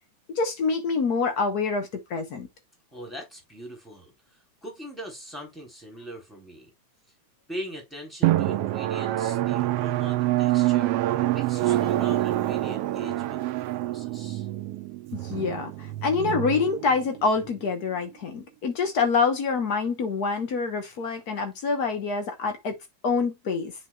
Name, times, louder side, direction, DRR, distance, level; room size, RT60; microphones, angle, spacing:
voice 1, 0.3-2.5 15.1-22.8 23.0-23.7, left 4 dB, 90° left, 0.8 m, -26 dB
voice 2, 2.9-4.1 4.6-6.7 7.5-13.4 13.8-14.5, equal, ahead, 3.4 m, -41 dB
Drum, 8.2-17.5, right 15 dB, 85° right, 1.3 m, -26 dB
9.9 x 4.9 x 2.3 m
omnidirectional pair, 3.4 m